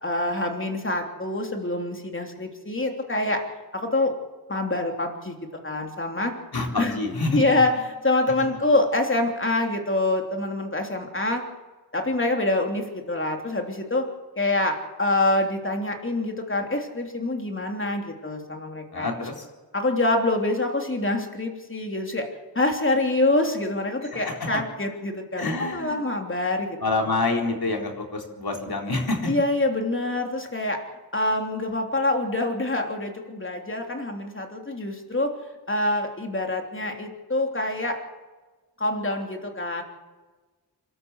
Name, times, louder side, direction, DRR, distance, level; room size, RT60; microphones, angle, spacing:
voice 1, 0.0-3.4 3.7-4.1 4.5-5.4 5.6-6.3 6.8-7.0 7.3-7.7 8.0-11.4 11.9-14.1 14.3-19.1 19.7-22.3 22.5-26.8 29.3-30.8 31.1-35.3 35.7-38.0 38.8-39.8, left 2 dB, 30° left, 3 dB, 3.2 m, -25 dB
voice 2, 6.5-7.5 18.9-19.4 24.1-24.5 25.4-26.0 26.8-29.3, left 2 dB, 70° left, 2 dB, 4.0 m, -27 dB
27.5 x 12.5 x 8.0 m, 1.3 s
wide cardioid pair, 90°, 39 cm